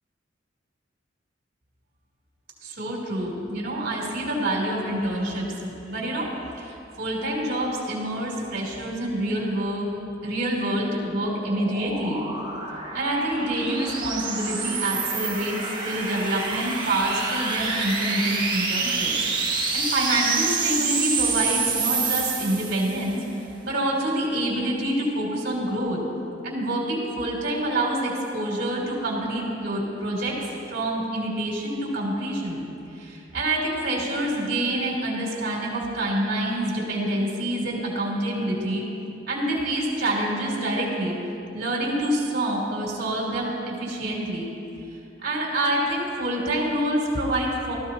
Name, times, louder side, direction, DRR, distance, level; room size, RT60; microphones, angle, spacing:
voice 1, 2.6-9.9 10.2-12.2 12.9-15.6 15.8-23.2 23.6-26.0 26.4-30.3 30.7-32.6 32.9-38.9 39.3-41.2 41.5-44.5 45.2-47.7, right 1 dB, 60° right, -3 dB, 3.4 m, -27 dB
sound 1, 10.5-23.1, right 4 dB, 25° right, 1.7 m, -28 dB
18.5 x 14.5 x 2.9 m, 2.7 s
head